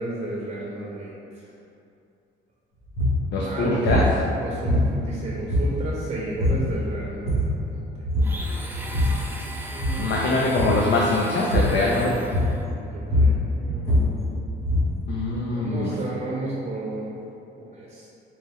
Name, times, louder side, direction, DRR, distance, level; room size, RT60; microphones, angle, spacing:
voice 1, 0.0-1.5 3.3-10.5 12.5-14.6 15.5-17.2 17.6-18.1, right 2 dB, 40° right, -5 dB, 0.7 m, -34 dB
sound 1, 2.9-3.2 3.8-4.1 4.6-5.2 5.5-6.0 6.4-6.7 7.1-7.6 8.0-8.4 8.7-9.3 9.7-10.1 10.5-10.9 11.5-11.8 12.3-12.7 13.0-15.0, left 1 dB, 90° left, 1.4 m, -22 dB
voice 2, 3.3-4.0 10.0-12.1 15.1-15.9, left 2 dB, 65° left, -4 dB, 0.5 m, -23 dB
Domestic sounds home sounds, 8.2-12.6, right 1 dB, 10° right, 0.4 m, -37 dB
4.4 x 2.2 x 3.4 m, 2.6 s
cardioid pair, 90°, 20 cm